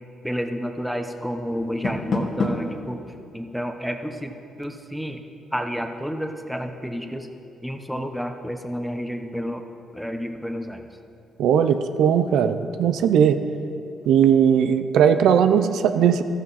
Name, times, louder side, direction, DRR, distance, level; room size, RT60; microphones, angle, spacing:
voice 1, 0.2-3.0 3.3-4.3 4.6-5.2 5.5-7.3 7.6-9.6 9.9-10.9, equal, ahead, 5 dB, 1.0 m, -30 dB
Door, 1.6-2.8, left 3 dB, 50° left, 1.7 m, -27 dB
voice 2, 11.4-13.4 14.1-16.2, right 8 dB, 80° right, 9 dB, 0.5 m, -18 dB
13.5 x 13.0 x 4.2 m, 2.6 s
cardioid pair, 90°, 0 cm